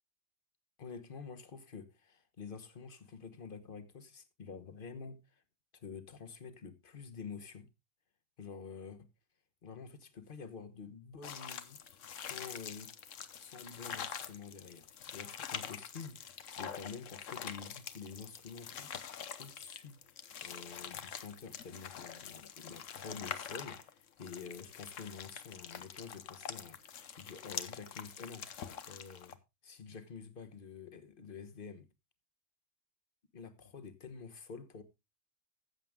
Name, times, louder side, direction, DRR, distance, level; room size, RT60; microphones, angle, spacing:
voice 1, 0.8-5.4 5.7-7.7 8.4-9.1 9.6-16.3 16.6-19.1 19.4-28.5 28.8-31.9 33.3-34.8, left 5 dB, 45° left, 1.3 m, -48 dB
sound 1, 11.2-29.3, left 8 dB, 80° left, 1.3 m, -45 dB
14.5 x 7.6 x 3.6 m
omnidirectional pair, 1.3 m